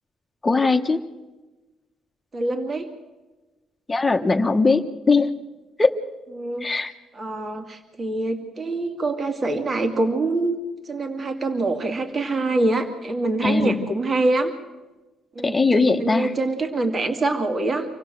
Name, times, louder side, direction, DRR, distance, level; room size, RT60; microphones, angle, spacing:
voice 1, 0.4-1.0 3.9-5.3 5.8-5.9 6.6-6.9 13.4-13.8 15.4-16.3, left 3 dB, 20° left, 5 dB, 1.2 m, -19 dB
voice 2, 2.3-2.9 6.3-6.7 7.1-10.6 10.9-14.5 15.3-15.6 16.0-17.8, right 2 dB, 40° right, 5 dB, 2.4 m, -25 dB
26.5 x 16.0 x 7.8 m, 1.2 s
cardioid pair, 90°, 0 cm